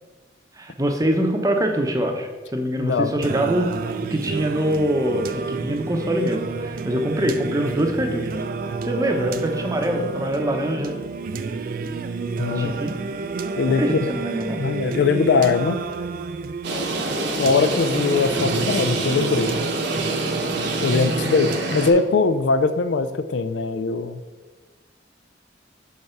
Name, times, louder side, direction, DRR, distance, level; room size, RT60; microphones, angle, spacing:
voice 1, 0.5-8.3 8.8-11.0 12.5-12.9 13.8-14.7, right 1 dB, 20° right, 4 dB, 0.7 m, -24 dB
voice 2, 2.8-3.1 12.4-12.7 13.6-14.1 14.6-15.8 17.4-19.5 20.8-24.2, left 4 dB, 70° left, 11 dB, 0.4 m, -21 dB
Singing, 3.2-22.2, right 4 dB, 50° right, 0.3 m, -30 dB
sound 1, 16.6-21.9, right 2 dB, 65° right, 1.0 m, -26 dB
5.5 x 4.7 x 5.7 m, 1.3 s
head